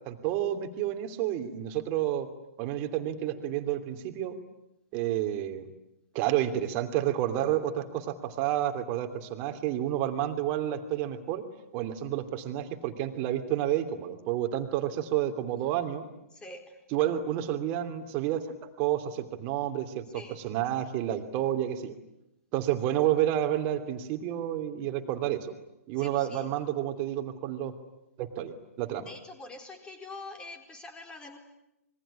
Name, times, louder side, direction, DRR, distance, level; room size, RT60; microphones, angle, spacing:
voice 1, 0.0-2.3 2.6-4.4 4.9-5.6 6.1-11.4 11.7-16.1 16.9-18.4 18.8-21.9 22.5-25.5 25.9-27.7 28.2-29.1, right 12 dB, 30° right, 6 dB, 2.8 m, -30 dB
voice 2, 16.3-16.8 20.1-20.4 25.9-26.5 29.0-31.4, left 2 dB, 10° left, 5 dB, 4.4 m, -45 dB
26.5 x 22.5 x 10.0 m, 0.88 s
figure-of-eight pair, 120°, 8 cm